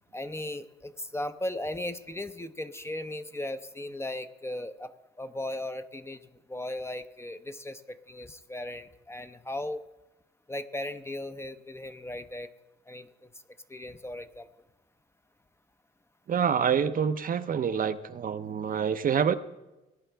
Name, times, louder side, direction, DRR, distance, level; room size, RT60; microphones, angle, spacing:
voice 1, 0.1-9.8 10.5-12.5 12.9-13.3 13.7-14.5, left 1 dB, 15° left, 10 dB, 0.6 m, -37 dB
voice 2, 16.3-19.4, right 7 dB, 45° right, 10 dB, 0.6 m, -27 dB
19.0 x 10.5 x 3.4 m, 1.0 s
cardioid pair, 90°, 20 cm